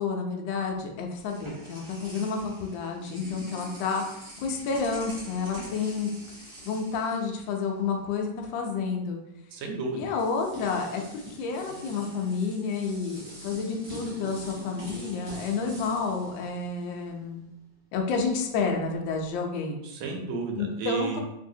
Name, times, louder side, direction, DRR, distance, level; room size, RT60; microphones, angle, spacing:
voice 1, 0.0-6.1 6.4-9.2 9.9-11.0 11.3-17.4 17.9-19.8 20.6-21.2, left 5 dB, 75° left, 2 dB, 1.2 m, -30 dB
sound 1, 0.7-7.9 8.2-8.4 9.5-9.6 10.1-17.3, right 2 dB, 30° right, 1.0 m, -45 dB
voice 2, 9.5-10.1 19.8-21.2, right 4 dB, 85° right, 2 dB, 1.4 m, -32 dB
3.1 x 2.7 x 2.6 m, 0.85 s
omnidirectional pair, 2.1 m